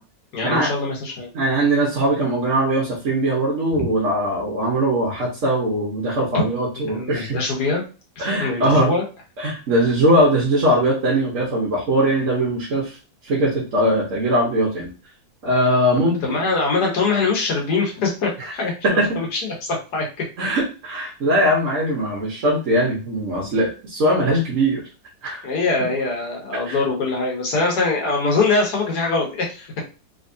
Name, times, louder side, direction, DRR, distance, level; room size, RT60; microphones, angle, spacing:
voice 1, 0.3-1.3 3.7-3.8 6.3-6.4 6.9-7.8 8.2-9.0 16.0-20.3 25.4-29.8, left 3 dB, 65° left, 0 dB, 1.6 m, -23 dB
voice 2, 1.3-7.4 8.2-8.9 9.4-13.0 13.2-14.9 15.4-16.4 18.4-18.5 18.8-19.2 20.4-24.8 25.2-25.5 26.6-26.8, right 1 dB, 50° right, -3 dB, 1.2 m, -20 dB
3.6 x 3.2 x 2.6 m, 0.33 s
omnidirectional pair, 1.9 m